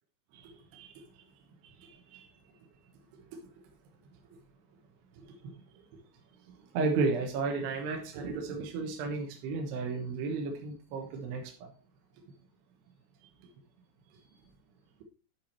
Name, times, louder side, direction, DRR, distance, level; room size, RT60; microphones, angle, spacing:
voice 1, 0.3-1.3 1.6-2.6 3.2-3.5 4.1-4.2 5.1-5.6 6.4-11.7 12.3-12.4 13.2-13.3 14.1-14.4, right 4 dB, 65° right, 2 dB, 2.9 m, -35 dB
10.5 x 5.1 x 4.3 m, 0.39 s
omnidirectional pair, 5.9 m